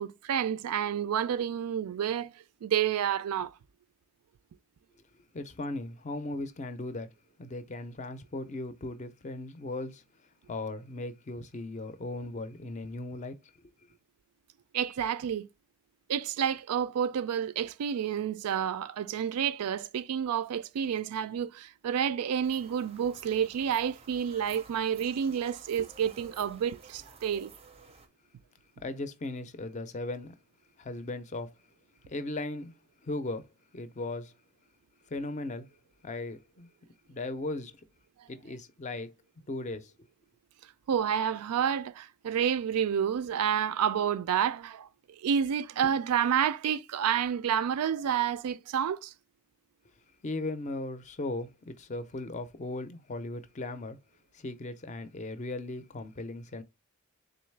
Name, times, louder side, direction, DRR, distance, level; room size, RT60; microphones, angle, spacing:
voice 1, 0.0-2.3 2.6-3.5 14.7-15.5 16.1-27.5 40.9-44.9 45.2-49.1, right 8 dB, 85° right, 0.3 m, -29 dB
voice 2, 5.3-7.1 7.4-10.0 10.5-13.4 28.8-30.3 30.8-31.5 32.1-32.7 33.0-33.4 33.7-34.3 35.1-35.7 36.0-36.7 37.1-37.7 38.3-39.1 39.5-39.9 50.2-54.0 54.3-56.6, left 2 dB, 30° left, 0.4 m, -37 dB
sound 1, 22.4-28.1, right 4 dB, 25° right, 0.5 m, -53 dB
3.8 x 3.1 x 3.2 m
head